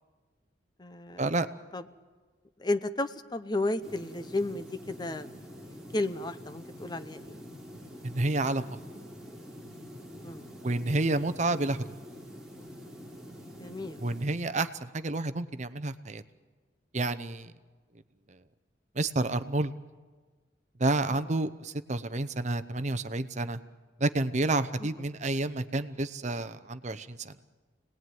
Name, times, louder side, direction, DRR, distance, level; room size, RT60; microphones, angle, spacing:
voice 1, 0.8-1.2 1.7-1.8 2.6-5.3 5.9-7.4 10.2-10.5 13.6-14.0 21.1-21.2 24.8-24.9, left 2 dB, 25° left, 11 dB, 0.8 m, -33 dB
sound 1, 3.8-14.2, equal, 5° right, 3.5 m, -46 dB
voice 2, 8.0-8.6 10.6-11.8 14.0-16.2 16.9-17.5 19.0-19.7 20.8-23.6 24.0-27.3, right 2 dB, 40° right, 12 dB, 0.8 m, -29 dB
27.5 x 19.5 x 9.3 m, 1.4 s
head